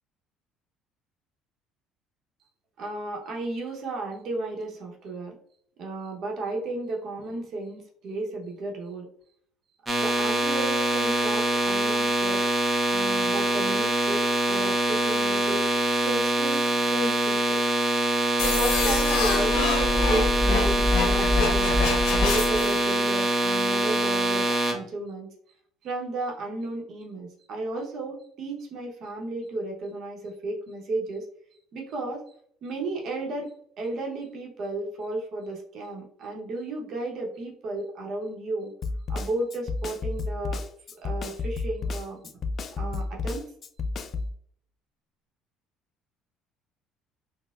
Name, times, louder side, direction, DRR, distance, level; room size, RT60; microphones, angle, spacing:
voice 1, 2.8-5.4 5.8-9.1 10.0-12.4 12.9-17.6 18.4-21.8 22.1-25.3 25.8-31.3 31.7-32.2 32.6-33.5 33.8-38.7 39.1-40.6 41.0-42.2 42.8-43.5, right 2 dB, 60° right, 0 dB, 0.9 m, -33 dB
sound 1, 9.9-24.7, right 1 dB, 20° right, 0.6 m, -24 dB
sound 2, 18.4-22.8, left 3 dB, 85° left, 0.7 m, -25 dB
Snare drum, 38.8-44.3, left 3 dB, 45° left, 0.3 m, -31 dB
4.1 x 2.1 x 2.3 m, 0.62 s
cardioid pair, 105°, 0 cm